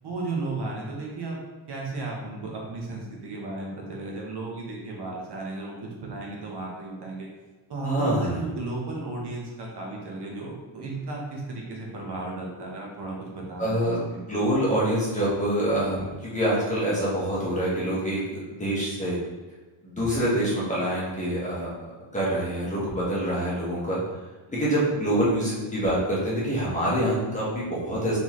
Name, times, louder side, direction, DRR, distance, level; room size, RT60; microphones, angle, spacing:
voice 1, 0.0-1.4 1.7-7.3 7.7-14.2, right 3 dB, 55° right, -2 dB, 1.0 m, -34 dB
voice 2, 7.8-8.3 13.6-14.0 14.3-19.2 19.8-21.7 22.1-24.0 24.5-28.2, right 1 dB, 15° left, -8 dB, 1.3 m, -26 dB
3.9 x 3.7 x 3.1 m, 1.2 s
wide cardioid pair, 165°, 48 cm